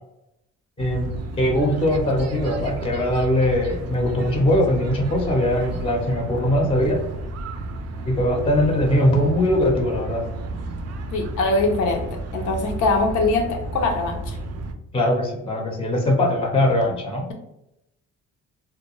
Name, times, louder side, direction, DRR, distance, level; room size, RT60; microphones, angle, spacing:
voice 1, 0.8-7.0 8.0-10.3 14.9-17.3, left 1 dB, 20° left, 2 dB, 0.6 m, -21 dB
sound 1, 0.8-14.7, right 2 dB, 55° right, 0.4 m, -32 dB
voice 2, 11.1-14.4, left 3 dB, 75° left, 2 dB, 0.6 m, -22 dB
2.3 x 2.2 x 3.0 m, 0.85 s
cardioid pair, 90°, 30 cm